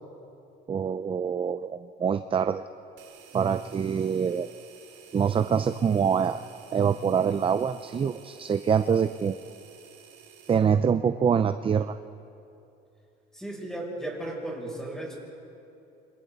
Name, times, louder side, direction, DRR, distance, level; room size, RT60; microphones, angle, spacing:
voice 1, 0.7-2.6 3.3-4.5 5.1-6.4 6.7-9.3 10.5-12.0, right 7 dB, 25° right, 10 dB, 0.6 m, -25 dB
sound 1, 3.0-10.7, right 8 dB, 70° right, 3.0 m, -52 dB
voice 2, 13.3-15.1, right 1 dB, 5° left, -3 dB, 7.3 m, -35 dB
29.0 x 27.5 x 4.1 m, 2.8 s
cardioid pair, 120°, 20 cm